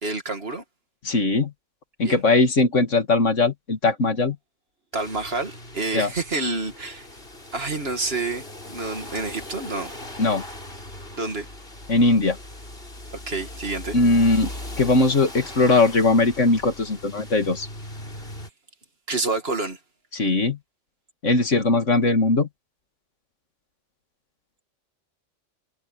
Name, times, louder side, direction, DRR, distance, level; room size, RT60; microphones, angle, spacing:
voice 1, 0.0-0.6 2.0-2.2 4.9-7.1 7.5-9.9 11.2-11.5 13.3-14.0 19.1-19.8, right 3 dB, 55° right, 2.4 m, -28 dB
voice 2, 1.0-1.5 2.0-4.4 5.9-6.1 10.2-10.4 11.9-12.4 13.9-14.5 14.8-17.7 20.1-20.6 21.2-22.5, left 3 dB, 80° left, 2.6 m, -20 dB
sound 1, 4.9-18.5, left 1 dB, 50° left, 5.5 m, -39 dB
omnidirectional pair, 1.3 m